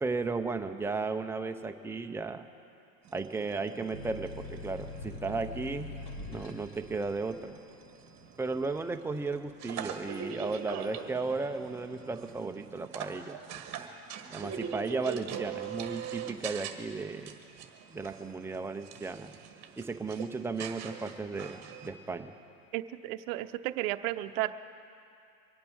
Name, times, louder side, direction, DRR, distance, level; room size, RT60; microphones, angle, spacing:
voice 1, 0.0-2.5 3.1-5.9 6.3-7.6 8.4-13.4 14.3-17.4 17.9-19.3 19.8-22.3, right 3 dB, 5° right, 5 dB, 0.6 m, -35 dB
sound 1, 3.0-21.9, right 7 dB, 35° right, 1.5 m, -43 dB
sound 2, 3.9-11.2 11.6-12.4, left 3 dB, 50° left, 3.0 m, -45 dB
voice 2, 22.7-24.5, right 16 dB, 60° right, 10 dB, 0.8 m, -33 dB
24.0 x 8.7 x 6.3 m, 2.5 s
supercardioid pair, 115°, 45 cm